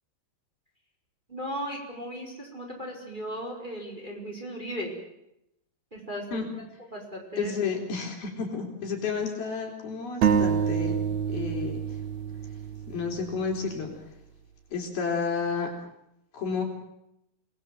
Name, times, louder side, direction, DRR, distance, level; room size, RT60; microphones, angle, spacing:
voice 1, 1.3-4.9 5.9-6.2 6.9-7.5, equal, 10° right, 0 dB, 5.0 m, -36 dB
voice 2, 7.4-11.0 11.3-12.0 12.9-14.0 14.7-15.7 16.3-16.6, left 5 dB, 65° left, 1 dB, 5.7 m, -31 dB
sound 1, 10.2-13.8, right 7 dB, 60° right, 2.3 m, -27 dB
29.0 x 19.0 x 7.8 m, 0.83 s
omnidirectional pair, 4.8 m